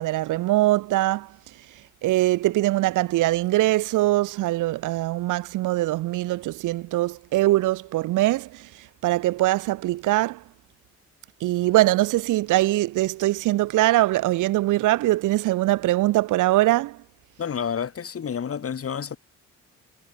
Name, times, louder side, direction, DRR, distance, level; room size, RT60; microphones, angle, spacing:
voice 1, 0.0-1.3 2.0-10.4 11.4-17.0, right 17 dB, 85° right, 1.3 m, -22 dB
voice 2, 17.4-19.2, left 7 dB, 50° left, 5.6 m, -29 dB
cardioid pair, 90°, 30 cm